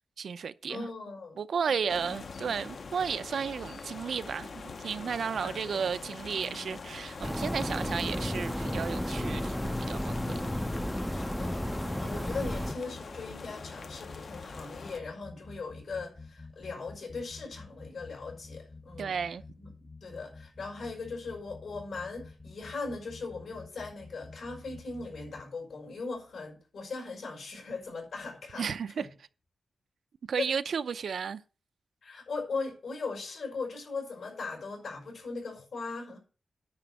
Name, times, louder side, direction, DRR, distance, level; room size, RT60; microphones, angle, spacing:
voice 1, 0.2-0.9 1.4-10.5 19.0-19.4 28.6-29.1 30.3-31.4, right 6 dB, 75° right, 0.5 m, -33 dB
voice 2, 0.7-1.4 1.7-1.9 5.4-6.0 11.1-11.6 12.0-19.1 19.6-19.7 20.0-28.7 29.0-29.1 30.4-30.5 32.0-36.2, left 4 dB, 80° left, 5.4 m, -39 dB
sound 1, 1.9-15.0, left 4 dB, 50° left, 0.7 m, -44 dB
sound 2, 7.2-12.7, equal, 5° left, 0.4 m, -33 dB
sound 3, 10.3-25.4, left 3 dB, 20° left, 0.8 m, -50 dB
9.6 x 5.0 x 8.0 m
wide cardioid pair, 175°, 0 cm